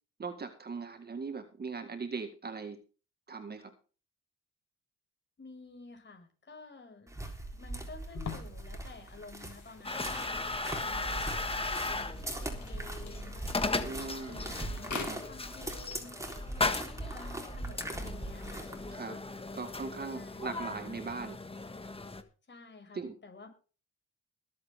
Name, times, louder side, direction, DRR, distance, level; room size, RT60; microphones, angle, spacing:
voice 1, 0.2-2.8 3.3-3.7 13.7-14.4 15.1-15.2 18.9-19.2 19.5-21.4 23.0-23.1, right 4 dB, 35° right, 7 dB, 1.9 m, -39 dB
voice 2, 5.4-7.2 7.5-10.4 10.8-13.4 13.8-16.3 17.0-18.7 20.1-20.7 22.5-23.5, left 3 dB, 35° left, 3 dB, 6.0 m, -51 dB
sound 1, 7.1-19.0, right 1 dB, 10° right, 3.7 m, -41 dB
sound 2, 8.1-15.7, left 6 dB, 70° left, 4.0 m, -48 dB
sound 3, 9.8-22.2, left 3 dB, 20° left, 1.6 m, -37 dB
21.0 x 8.2 x 3.6 m, 0.36 s
cardioid pair, 90°, 30 cm